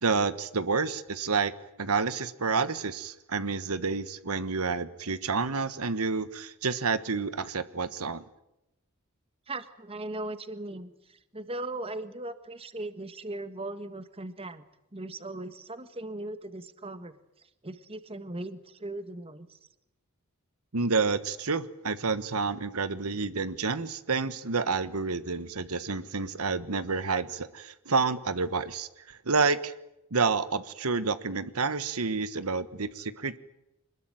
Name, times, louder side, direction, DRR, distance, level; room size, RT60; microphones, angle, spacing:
voice 1, 0.0-1.5 1.8-8.2 20.7-29.7 30.1-33.4, right 4 dB, 90° right, 13 dB, 1.4 m, -29 dB
voice 2, 9.5-14.6 14.9-17.1 17.6-19.6, right 2 dB, 25° right, 11 dB, 1.6 m, -38 dB
25.5 x 21.0 x 9.1 m, 0.85 s
head